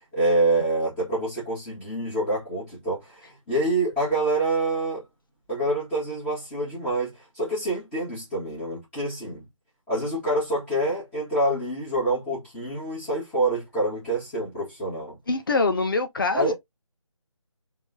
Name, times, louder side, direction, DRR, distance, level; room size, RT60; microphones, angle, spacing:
voice 1, 0.1-5.0 5.5-9.4 9.9-15.2 16.3-16.5, right 2 dB, 5° left, 1.8 m, -26 dB
voice 2, 15.3-16.5, left 3 dB, 40° left, 1.1 m, -24 dB
3.8 x 3.7 x 3.6 m
figure-of-eight pair, 165°, 17 cm